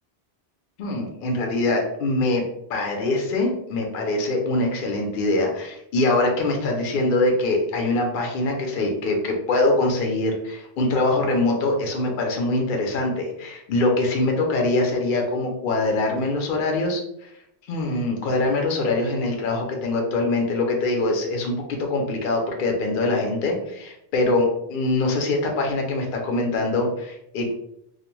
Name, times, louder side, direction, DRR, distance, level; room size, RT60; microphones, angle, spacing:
voice 1, 0.8-2.4 2.7-17.3 17.7-27.5, left 2 dB, 60° left, 1 dB, 0.7 m, -23 dB
2.4 x 2.1 x 3.0 m, 0.77 s
omnidirectional pair, 1.1 m